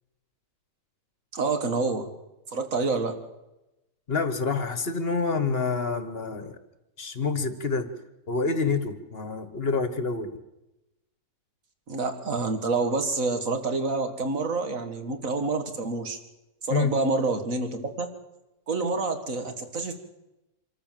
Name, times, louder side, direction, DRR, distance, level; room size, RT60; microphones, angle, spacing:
voice 1, 1.3-2.1 2.5-3.2 11.9-16.2 16.6-18.1 18.7-19.9, right 3 dB, 50° right, 7 dB, 2.2 m, -27 dB
voice 2, 4.1-6.5 7.0-7.9 8.3-10.3 16.7-16.9, left 4 dB, 40° left, 11 dB, 1.4 m, -27 dB
25.5 x 13.5 x 7.6 m, 0.97 s
omnidirectional pair, 1.8 m